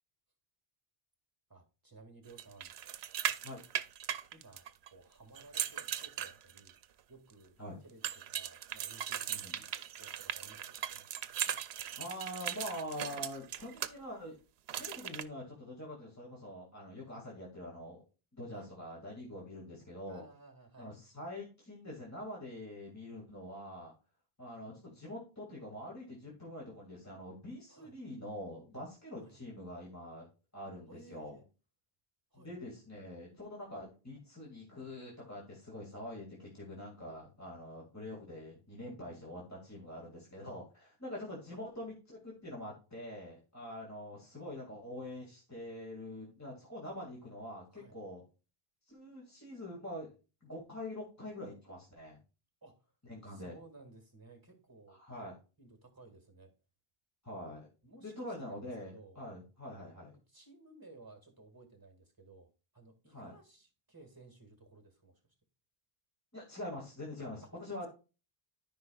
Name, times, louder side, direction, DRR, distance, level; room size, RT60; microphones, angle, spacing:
voice 1, 1.5-2.7 4.3-6.8 7.1-10.8 18.5-18.7 20.1-20.9 27.7-27.9 29.2-29.4 30.9-31.5 32.3-32.5 47.7-48.0 52.6-52.9 53.3-55.0 55.6-56.5 57.8-59.2 60.0-65.2 67.4-67.5, right 3 dB, 20° right, 5 dB, 1.9 m, -57 dB
sound 1, 2.4-4.9 5.4-6.8 8.0-13.9 14.7-15.2, right 10 dB, 85° right, 0.9 m, -38 dB
voice 2, 12.0-14.4 14.8-18.0 18.3-20.2 20.8-23.9 24.4-30.3 30.5-31.4 32.3-48.2 48.9-50.1 50.4-52.2 53.0-53.6 54.9-55.4 57.2-57.7 58.0-60.1 63.1-63.3 66.3-67.9, left 1 dB, 15° left, -3 dB, 2.2 m, -45 dB
13.5 x 5.2 x 2.3 m, 0.32 s
omnidirectional pair, 1.0 m